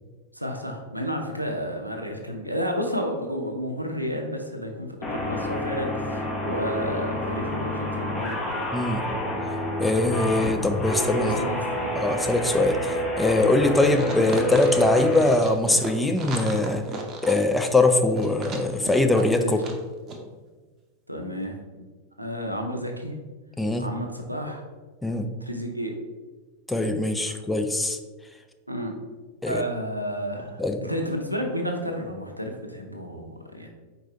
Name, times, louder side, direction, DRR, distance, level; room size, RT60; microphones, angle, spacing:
voice 1, 0.3-8.6 11.2-11.9 19.4-19.6 21.1-21.6 22.2-23.2 23.8-24.6 25.4-25.9 27.3-27.4 28.7-29.0 29.5-33.7, equal, 90° right, 3 dB, 0.6 m, -31 dB
sound 1, 5.0-15.3, equal, 25° left, 0.9 m, -29 dB
voice 2, 8.7-9.0 9.8-11.4 12.0-16.8 17.2-19.6 23.6-23.8 25.0-25.3 26.7-28.0 29.4-29.6 30.6-30.8, left 2 dB, 5° left, 6 dB, 0.4 m, -22 dB
sound 2, 13.9-19.8 20.1-20.2, right 3 dB, 30° right, 0.7 m, -35 dB
4.6 x 3.9 x 2.8 m, 1.3 s
figure-of-eight pair, 90°, 0 cm